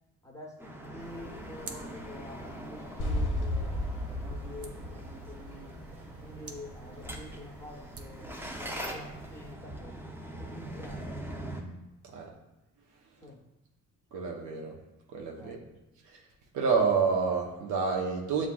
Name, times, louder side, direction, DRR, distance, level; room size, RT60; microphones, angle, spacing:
voice 1, 0.2-3.7 4.2-5.8 6.2-10.0 10.4-11.2 13.2-13.4 15.4-15.6, left 1 dB, 10° left, -1 dB, 0.9 m, -47 dB
sound 1, 0.6-11.6, right 1 dB, 5° right, 0.6 m, -43 dB
sound 2, 1.0-9.6, right 3 dB, 50° right, 0.6 m, -50 dB
sound 3, 3.0-6.0, left 1 dB, 40° left, 0.7 m, -33 dB
voice 2, 14.1-14.8 15.1-15.6 16.0-16.2 16.5-18.5, right 5 dB, 85° right, 0 dB, 0.8 m, -28 dB
7.3 x 2.4 x 2.3 m, 0.95 s
cardioid pair, 90°, 30 cm